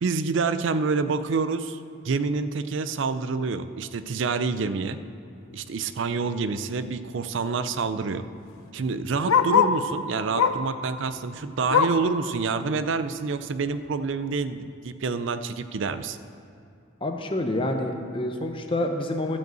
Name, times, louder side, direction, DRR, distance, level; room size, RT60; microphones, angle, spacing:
voice 1, 0.0-5.0 5.5-8.3 8.7-16.2, right 4 dB, 60° right, 12 dB, 0.4 m, -27 dB
Bark, 6.1-6.4 6.7-6.8 7.0-9.9 10.3-10.7 11.1-12.1 12.6-12.7 13.1-13.2 13.8-13.9, left 6 dB, 85° left, 0.5 m, -24 dB
voice 2, 17.0-19.4, left 1 dB, 25° left, 4 dB, 0.7 m, -27 dB
12.0 x 5.4 x 7.6 m, 2.5 s
head